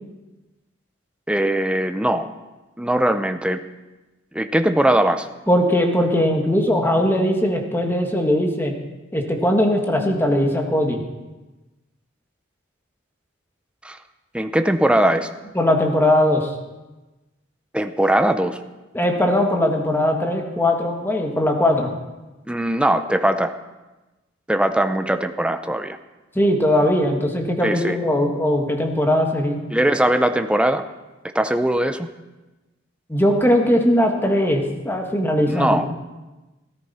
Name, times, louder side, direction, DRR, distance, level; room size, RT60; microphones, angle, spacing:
voice 1, 1.3-2.3 2.8-3.6 4.3-5.3 13.8-14.0 14.3-15.3 17.7-18.6 22.5-23.5 24.5-26.0 27.6-28.0 29.7-30.9 31.3-32.1 35.5-35.9, right 1 dB, 5° right, 9 dB, 0.6 m, -20 dB
voice 2, 5.5-8.7 9.1-11.0 15.5-16.5 18.9-21.9 26.3-29.6 33.1-35.8, left 1 dB, 10° left, 2 dB, 1.6 m, -19 dB
13.5 x 13.5 x 4.3 m, 1.1 s
head